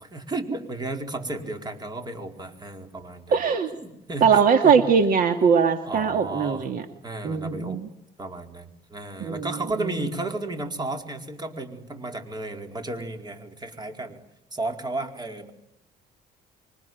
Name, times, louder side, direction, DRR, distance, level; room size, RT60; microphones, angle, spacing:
voice 1, 0.0-3.4 3.8-4.8 5.8-6.7 7.0-7.8 8.2-14.2 14.5-15.5, right 2 dB, 25° right, 5 dB, 4.5 m, -33 dB
voice 2, 3.3-3.7 4.2-6.8 7.2-7.9 9.2-9.5 9.9-10.0, right 6 dB, 55° right, 7 dB, 2.3 m, -21 dB
26.0 x 24.0 x 9.4 m, 0.82 s
cardioid pair, 110°, 17 cm